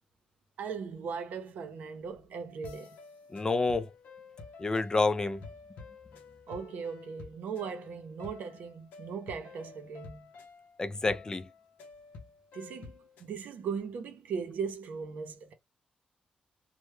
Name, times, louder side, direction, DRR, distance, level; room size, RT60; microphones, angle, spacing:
voice 1, 0.6-3.0 6.5-10.3 12.5-12.9 13.2-15.5, right 6 dB, 80° right, 0.6 m, -38 dB
sound 1, 2.6-13.3, left 4 dB, 85° left, 0.6 m, -50 dB
voice 2, 3.3-3.9 4.6-5.4 10.8-11.5, left 3 dB, 25° left, 0.3 m, -28 dB
2.2 x 2.1 x 3.1 m
cardioid pair, 80°, 3 cm